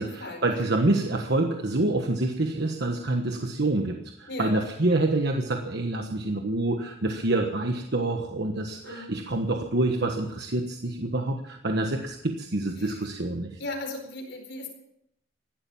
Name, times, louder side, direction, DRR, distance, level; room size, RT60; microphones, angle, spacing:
voice 1, 0.0-13.6, right 2 dB, 55° right, 4 dB, 1.3 m, -27 dB
voice 2, 4.3-4.6 8.8-9.1 13.6-14.7, left 2 dB, 60° left, 3 dB, 4.5 m, -36 dB
16.5 x 12.0 x 7.2 m, 0.79 s
head